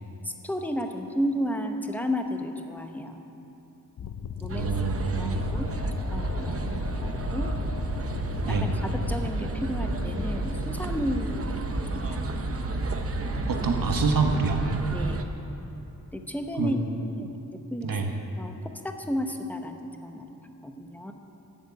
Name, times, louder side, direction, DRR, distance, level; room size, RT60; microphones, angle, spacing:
voice 1, 0.2-3.2 4.0-4.7 5.2-6.5 7.0-7.5 8.3-8.6 8.9-11.6 11.9-12.2 14.9-15.2 16.1-17.3 17.7-17.9 18.4-18.5 18.8-20.3 20.6-21.1, equal, 5° left, 4 dB, 0.8 m, -33 dB
sound 1, 4.0-15.1, left 7 dB, 55° left, 0.6 m, -37 dB
sound 2, 4.3-15.5, left 1 dB, 85° left, 2.2 m, -43 dB
sound 3, 4.5-15.2, right 3 dB, 40° right, 0.8 m, -31 dB
voice 2, 4.5-5.4 6.5-6.6 8.5-8.8 13.5-14.6 16.6-16.7 17.8-18.1, right 4 dB, 70° right, 4 dB, 1.3 m, -26 dB
12.5 x 9.6 x 8.1 m, 3.0 s
wide cardioid pair, 175°, 35 cm